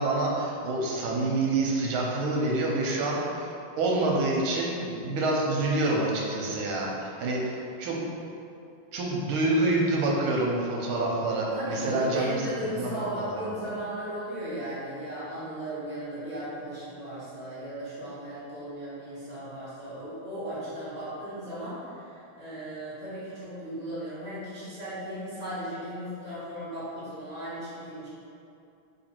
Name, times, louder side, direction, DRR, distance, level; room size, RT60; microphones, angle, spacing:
voice 1, 0.0-8.0 8.9-12.3 12.6-13.5, right 2 dB, 85° right, -2 dB, 1.6 m, -27 dB
voice 2, 11.5-28.1, equal, 25° right, -11 dB, 1.4 m, -36 dB
3.8 x 2.8 x 4.3 m, 2.6 s
omnidirectional pair, 2.3 m